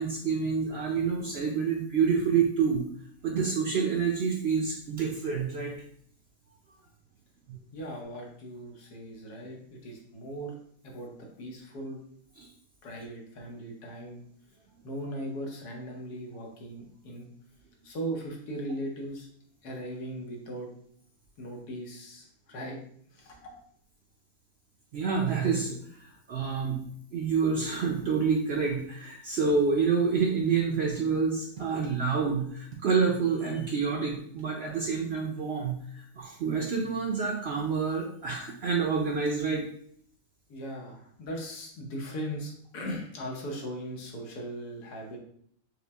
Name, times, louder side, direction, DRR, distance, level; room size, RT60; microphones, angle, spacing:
voice 1, 0.0-2.9 3.2-5.7 7.5-7.6 12.4-12.5 24.9-25.7 26.0-26.9 27.1-39.6, right 5 dB, 65° right, -1 dB, 0.6 m, -28 dB
voice 2, 7.7-10.6 10.8-12.0 12.8-14.2 14.5-17.3 17.8-19.3 19.6-20.7 21.4-22.8 23.1-23.5 40.5-45.2, right 1 dB, 90° left, 0 dB, 1.5 m, -38 dB
5.5 x 2.1 x 3.4 m, 0.64 s
omnidirectional pair, 1.6 m